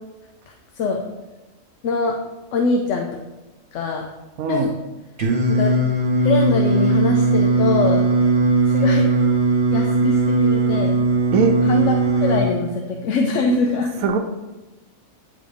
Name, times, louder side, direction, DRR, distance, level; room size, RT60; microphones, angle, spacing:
voice 1, 0.5-1.0 1.8-2.1 2.5-3.1 3.7-4.1 4.5-4.7 5.5-5.7 6.2-8.0 8.6-9.1 9.7-11.0 11.6-13.9, left 4 dB, 70° left, 2 dB, 0.9 m, -23 dB
voice 2, 4.4-4.7 11.3-11.6 14.0-14.2, right 5 dB, 85° right, 6 dB, 1.0 m, -20 dB
Singing, 5.2-12.4, right 2 dB, 70° right, 1.6 m, -18 dB
9.1 x 3.8 x 3.5 m, 1.1 s
omnidirectional pair, 1.4 m